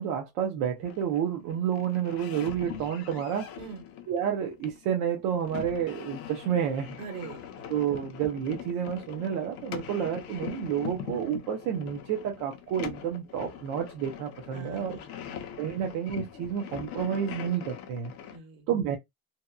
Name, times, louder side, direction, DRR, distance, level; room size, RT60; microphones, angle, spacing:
voice 1, 0.0-3.5 4.1-7.0 7.7-15.0 15.6-18.1 18.7-19.0, right 9 dB, 45° right, 0.6 m, -30 dB
sound 1, 0.8-18.4, left 9 dB, 35° left, 0.5 m, -42 dB
voice 2, 7.0-7.6 14.5-15.4 18.3-18.6, right 5 dB, 60° right, 1.5 m, -43 dB
2.8 x 2.1 x 2.3 m
cardioid pair, 160°, 43 cm